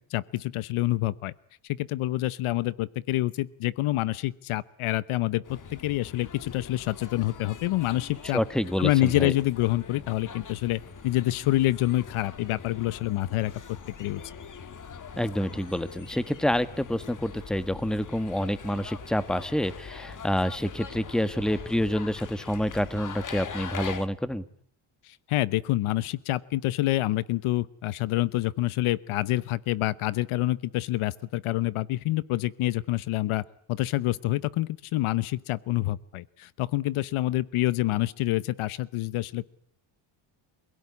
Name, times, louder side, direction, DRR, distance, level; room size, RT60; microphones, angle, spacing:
voice 1, 0.1-1.3 1.7-8.4 8.8-13.5 14.0-14.2 25.1-33.4 33.7-39.5, left 16 dB, 75° left, 19 dB, 1.0 m, -27 dB
sound 1, 5.4-24.1, left 6 dB, 40° left, 2.0 m, -42 dB
voice 2, 8.3-9.3 15.2-24.4, equal, ahead, 14 dB, 1.4 m, -28 dB
27.0 x 17.0 x 9.7 m, 0.63 s
cardioid pair, 95°, 50 cm